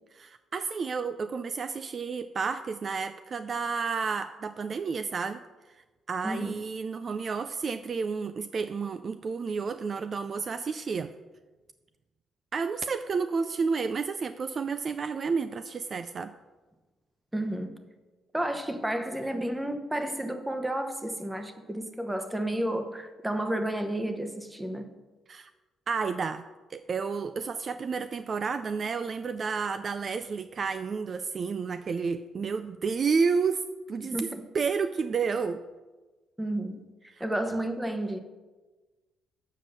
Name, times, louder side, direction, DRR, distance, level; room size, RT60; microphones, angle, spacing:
voice 1, 0.1-5.4 6.1-11.1 12.5-16.3 25.3-25.5 25.9-26.4 26.7-35.6 37.1-37.2, right 5 dB, 45° right, 11 dB, 0.3 m, -31 dB
voice 2, 6.2-6.5 17.3-17.8 18.3-24.9 34.1-34.4 36.4-36.8 37.2-38.2, right 1 dB, 10° right, 7 dB, 0.9 m, -31 dB
7.5 x 5.2 x 6.6 m, 1.2 s
cardioid pair, 90°, 0 cm